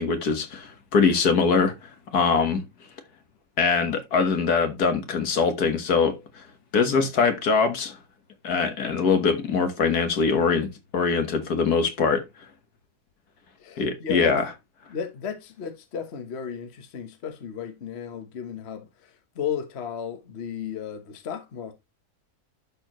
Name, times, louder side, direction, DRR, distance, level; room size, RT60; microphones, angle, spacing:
voice 1, 0.0-1.7 2.1-2.6 3.6-6.4 6.7-8.0 8.4-12.2 13.8-14.4, left 5 dB, 70° left, 1.9 m, -23 dB
voice 2, 13.6-14.3 14.9-21.7, left 8 dB, 45° left, 1.3 m, -34 dB
11.5 x 4.6 x 3.0 m
omnidirectional pair, 1.7 m